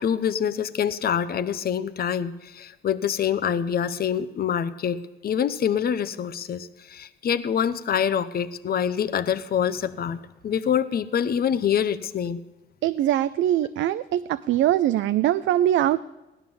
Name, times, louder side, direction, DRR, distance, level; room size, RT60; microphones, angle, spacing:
voice 1, 0.0-12.4, left 8 dB, 50° left, 11 dB, 0.8 m, -26 dB
voice 2, 12.8-16.0, right 12 dB, 75° right, 13 dB, 0.5 m, -22 dB
16.5 x 11.0 x 7.0 m, 1.1 s
cardioid pair, 90°, 20 cm